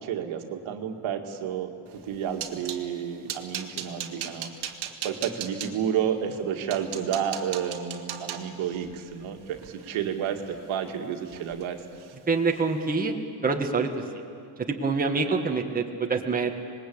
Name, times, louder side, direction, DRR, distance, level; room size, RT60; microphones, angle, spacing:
voice 1, 0.0-4.7 5.0-11.8 15.2-15.4, right 8 dB, 80° right, 4 dB, 2.2 m, -31 dB
sound 1, 2.0-2.8 3.3-5.7 6.3-6.4 6.7-10.9 11.3-11.7 11.9-12.2 12.6-12.7, right 9 dB, 55° right, 2.0 m, -38 dB
voice 2, 12.3-13.1 13.4-13.9 14.8-16.5, right 4 dB, 20° right, 2 dB, 1.6 m, -25 dB
26.0 x 20.5 x 8.6 m, 2.4 s
cardioid pair, 150°, 47 cm